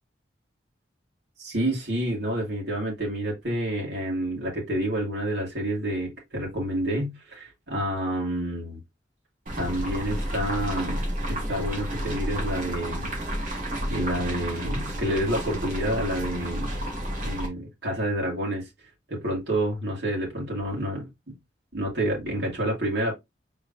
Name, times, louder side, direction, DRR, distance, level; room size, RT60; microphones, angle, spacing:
voice 1, 1.4-8.8 9.6-13.1 13.4-13.6 13.9-16.7 17.2-18.7 19.1-21.1 21.7-23.1, right 1 dB, 65° right, 2.2 m, -29 dB
sound 1, 9.5-17.5, equal, 45° right, 2.0 m, -31 dB
5.5 x 3.8 x 2.6 m
head